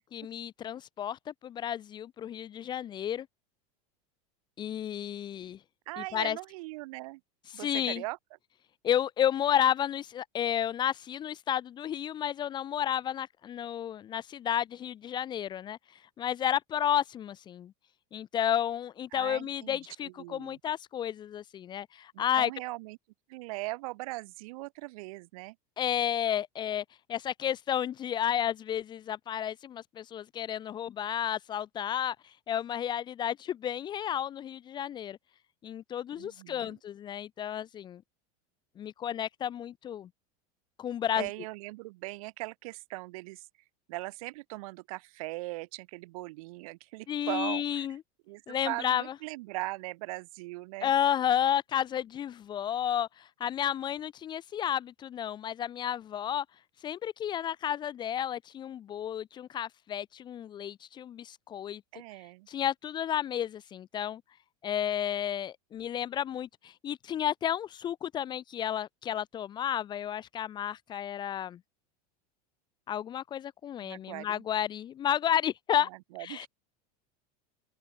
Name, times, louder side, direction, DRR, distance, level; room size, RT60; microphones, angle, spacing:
voice 1, 0.0-3.3 4.6-5.6 6.0-6.4 7.5-8.0 8.8-15.8 16.2-17.7 18.1-22.5 25.8-26.8 27.1-32.1 32.5-35.2 35.6-38.0 38.8-40.1 40.8-41.3 47.1-48.0 48.5-49.0 50.8-56.4 56.8-61.8 62.5-64.2 64.6-71.6 72.9-75.9 76.2-76.5, left 10 dB, 25° left, 1.5 m, -32 dB
voice 2, 5.9-7.2 7.5-8.2 19.1-20.6 22.1-23.0 23.3-25.5 36.2-36.8 41.1-43.5 43.9-47.9 48.3-50.9 61.9-62.5 73.8-74.4 75.9-76.5, right 22 dB, 65° right, 5.1 m, -40 dB
open air
supercardioid pair, 170°, 20 cm